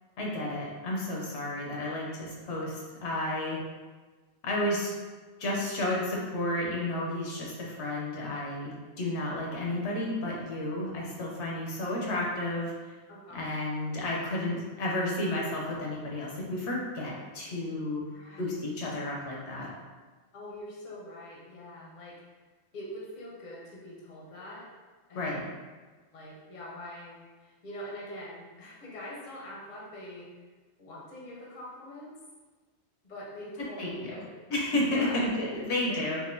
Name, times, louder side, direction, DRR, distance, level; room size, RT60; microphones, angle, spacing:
voice 1, 0.2-3.6 4.4-4.9 5.4-12.7 13.3-18.0 18.4-19.7 25.1-25.4 33.8-33.9 34.5-36.2, left 1 dB, 75° left, -3 dB, 1.0 m, -32 dB
voice 2, 13.1-13.5 18.1-18.6 20.3-22.2 22.7-24.7 25.1-25.6 26.1-30.3 30.8-32.1 33.0-34.4 34.9-35.2 35.5-35.6 35.9-36.0, left 1 dB, 45° left, -4 dB, 0.8 m, -44 dB
3.6 x 2.5 x 2.6 m, 1.3 s
omnidirectional pair, 1.2 m